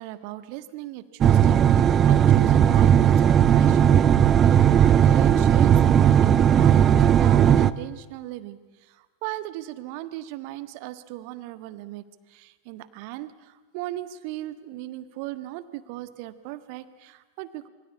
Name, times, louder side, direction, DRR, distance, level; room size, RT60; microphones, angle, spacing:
voice 1, 0.0-8.6 8.9-9.0 9.2-12.0 12.3-17.7, right 15 dB, 45° right, 13 dB, 1.4 m, -37 dB
sound 1, 1.2-7.7, right 9 dB, 25° right, 0.8 m, -17 dB
27.0 x 24.0 x 8.5 m, 1.3 s
figure-of-eight pair, 90°, 0 cm